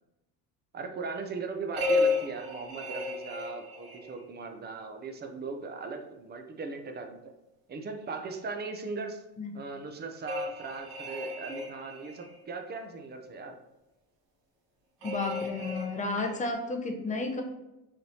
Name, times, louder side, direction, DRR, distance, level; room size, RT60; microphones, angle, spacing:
voice 1, 0.7-7.3 7.7-9.2 9.5-13.6, right 4 dB, 25° right, 5 dB, 0.5 m, -38 dB
sound 1, 1.7-4.2 10.2-12.4 15.0-16.5, left 3 dB, 60° right, 1.4 m, -33 dB
voice 2, 15.0-17.4, left 3 dB, 20° left, 3 dB, 0.6 m, -32 dB
5.0 x 3.1 x 2.7 m, 0.95 s
cardioid pair, 130°, 38 cm